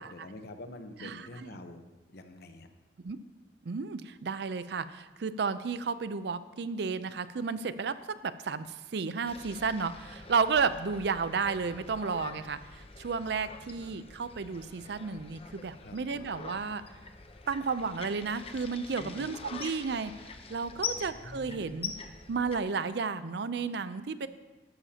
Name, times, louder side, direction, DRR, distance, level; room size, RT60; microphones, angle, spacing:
voice 1, 0.0-1.9 2.1-2.7 15.8-16.3 19.0-19.3 20.7-21.8, left 2 dB, 60° left, 7 dB, 0.9 m, -47 dB
voice 2, 1.0-1.6 3.0-3.2 3.7-16.8 17.5-20.1 20.5-21.9 22.3-24.3, right 5 dB, 65° right, 13 dB, 0.5 m, -32 dB
sound 1, 9.3-22.6, left 5 dB, 35° left, 0.7 m, -44 dB
13.0 x 12.0 x 2.8 m, 1.2 s
head